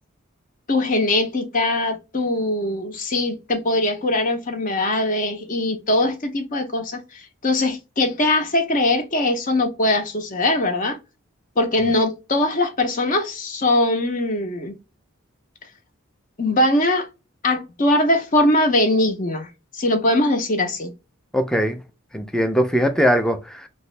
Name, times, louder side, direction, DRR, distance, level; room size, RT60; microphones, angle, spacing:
voice 1, 0.7-7.0 7.4-11.0 11.6-14.7 16.4-17.1 17.4-19.5 19.7-20.9, left 1 dB, 40° left, 0.7 m, -21 dB
voice 2, 21.3-21.8 22.1-23.7, equal, 5° left, 0.4 m, -21 dB
3.0 x 2.7 x 3.1 m
head